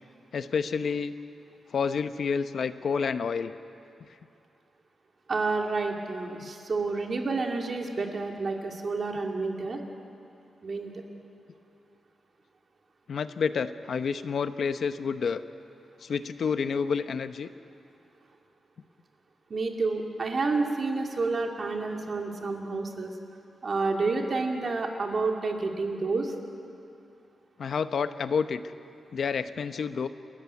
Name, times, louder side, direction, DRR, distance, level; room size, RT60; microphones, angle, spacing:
voice 1, 0.3-1.1 1.7-3.5 6.4-6.5 13.1-15.4 16.0-17.5 27.6-28.6 29.1-30.1, left 6 dB, 55° left, 11 dB, 0.8 m, -29 dB
voice 2, 5.3-9.8 10.6-10.9 19.5-23.1 23.6-26.3, right 3 dB, 40° right, 2 dB, 2.4 m, -29 dB
30.0 x 14.5 x 9.4 m, 2.6 s
wide cardioid pair, 155°, 0 cm